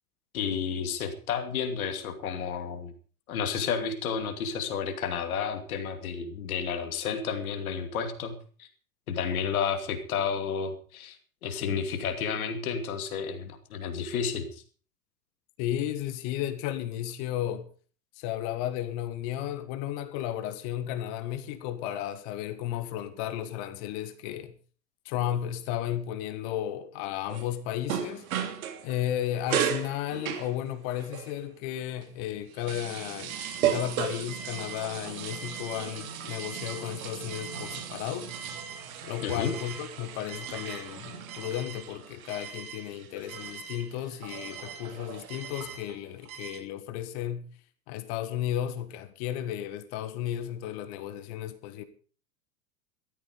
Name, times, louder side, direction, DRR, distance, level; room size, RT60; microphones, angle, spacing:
voice 1, 0.3-2.9 3.3-8.3 8.6-8.7 9.1-11.2 11.4-14.6 39.2-39.5, left 6 dB, 60° left, 2.8 m, -31 dB
voice 2, 15.6-17.7 18.2-24.5 25.0-28.3 28.8-33.4 33.7-38.3 39.0-47.5 47.9-51.8, left 11 dB, 45° left, 1.6 m, -34 dB
sound 1, 27.3-29.1 29.4-31.4 32.0-46.6, right 9 dB, 60° right, 3.0 m, -36 dB
15.5 x 13.5 x 5.2 m
figure-of-eight pair, 95°, 48 cm